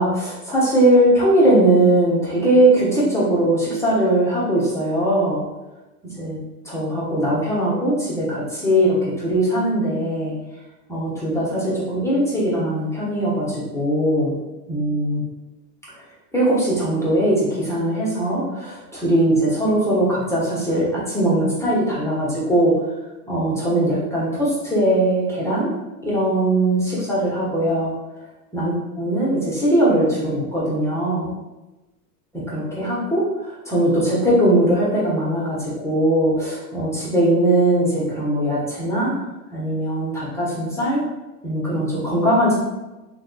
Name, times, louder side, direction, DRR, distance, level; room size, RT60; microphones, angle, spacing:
voice 1, 0.0-5.4 6.0-6.4 6.6-10.3 10.9-14.4 14.7-15.2 16.3-22.8 23.3-25.7 26.0-27.9 28.5-31.3 32.3-39.1 39.5-41.0 41.4-42.5, right 1 dB, 5° left, -7 dB, 1.2 m, -20 dB
3.6 x 3.3 x 2.3 m, 1.1 s
supercardioid pair, 105°, 49 cm